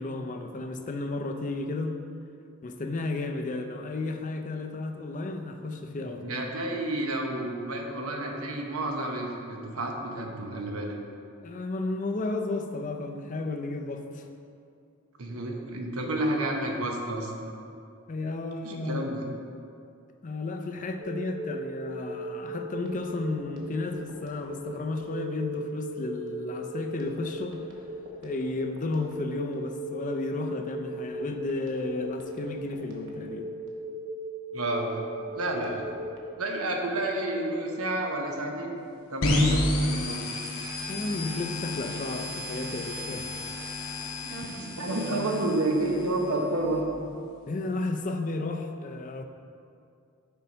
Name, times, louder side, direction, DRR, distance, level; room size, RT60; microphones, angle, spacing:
voice 1, 0.0-2.0 2.6-6.3 11.4-14.3 18.1-19.1 20.2-27.6 28.2-33.5 40.9-43.3 47.5-49.2, left 2 dB, 35° left, 5 dB, 0.5 m, -33 dB
voice 2, 6.2-11.0 15.2-17.5 18.6-19.2 34.5-35.0 35.3-35.8 36.4-40.2 44.2-46.8, right 1 dB, 85° right, 1 dB, 0.9 m, -30 dB
Telephone, 21.0-36.3, right 1 dB, 60° right, 1.1 m, -37 dB
sound 1, 39.2-46.8, left 2 dB, 70° left, 1.0 m, -31 dB
6.8 x 4.6 x 5.2 m, 2.5 s
head